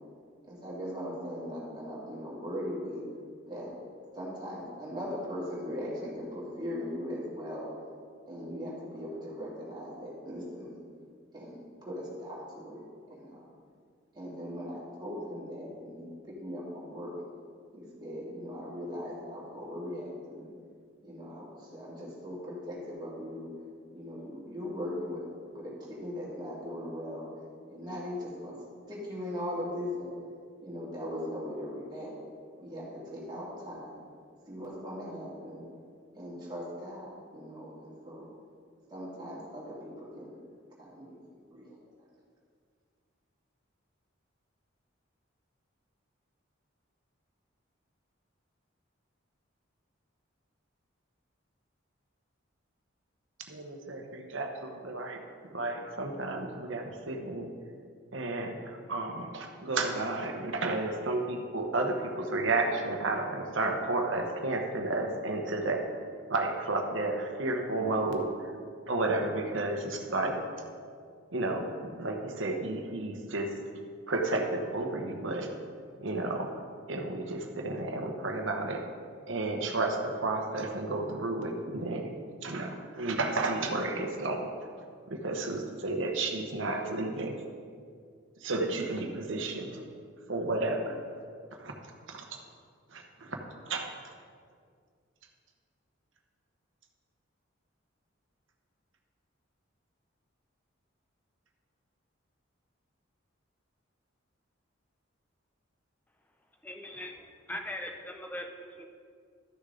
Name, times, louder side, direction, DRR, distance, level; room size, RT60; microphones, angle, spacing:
voice 1, 0.5-3.0 3.5-3.7 4.1-7.7 8.3-10.9 11.3-12.8 13.1-13.4 14.1-17.1 17.7-20.5 21.0-23.5 23.9-25.2 25.5-27.3 27.7-28.6 28.9-30.1 30.6-32.1 32.6-34.0 34.5-35.7 36.1-38.2 38.9-40.3 40.8-41.2 41.5-41.8, equal, 20° right, -7 dB, 2.4 m, -39 dB
voice 2, 53.5-57.5 58.1-65.8 66.3-68.5 68.9-70.4 71.3-73.5 74.1-75.5 76.0-76.6 76.9-78.8 79.3-82.1 82.4-84.5 85.1-87.3 88.4-89.8 90.3-91.0 91.6-91.7 92.1-92.4 92.9-93.4 93.7-93.9, right 2 dB, 70° right, 3 dB, 1.1 m, -32 dB
voice 3, 106.6-108.9, left 1 dB, 10° left, 3 dB, 0.6 m, -40 dB
12.5 x 6.6 x 3.9 m, 2.1 s
head